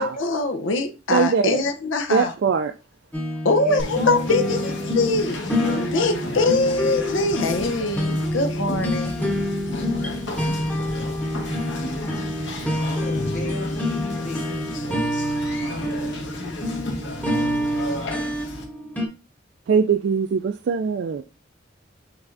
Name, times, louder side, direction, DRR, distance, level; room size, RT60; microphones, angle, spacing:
voice 1, 0.0-2.3 3.4-5.4 5.9-9.1, left 2 dB, 90° left, 0.7 m, -23 dB
voice 2, 1.1-1.6 2.1-2.7 19.7-21.2, right 5 dB, 65° right, 0.3 m, -21 dB
sound 1, 3.1-19.1, left 1 dB, 10° left, 0.8 m, -27 dB
voice 3, 3.6-5.0 8.3-8.4 10.0-10.3 12.7-14.5, left 1 dB, 40° left, 1.4 m, -36 dB
Conversation, 3.8-18.6, left 1 dB, 75° left, 1.2 m, -32 dB
5.8 x 3.2 x 2.6 m
head